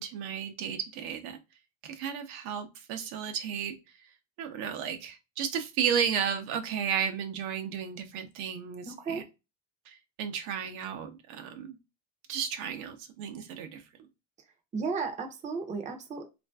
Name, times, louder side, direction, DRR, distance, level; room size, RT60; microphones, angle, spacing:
voice 1, 0.0-1.4 1.8-3.8 4.4-9.2 9.9-11.8 12.3-13.8, right 8 dB, 85° right, 0.7 m, -33 dB
voice 2, 8.9-9.2 14.7-16.3, right 4 dB, 20° right, 0.5 m, -34 dB
3.2 x 2.5 x 2.2 m
cardioid pair, 135°, 35 cm